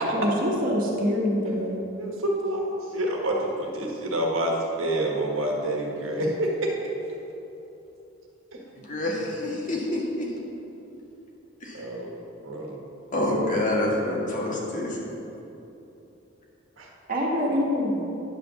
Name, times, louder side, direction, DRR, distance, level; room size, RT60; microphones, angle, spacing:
voice 1, 0.1-1.8 17.1-18.0, equal, 45° right, -2 dB, 1.6 m, -25 dB
voice 2, 2.0-6.8 11.7-12.2 12.4-12.8 16.8-16.9, right 1 dB, 75° right, 0 dB, 1.5 m, -27 dB
voice 3, 8.8-10.3 11.6-11.9 13.1-15.0, left 1 dB, 40° left, -3 dB, 1.8 m, -27 dB
10.5 x 5.1 x 6.9 m, 3.0 s
head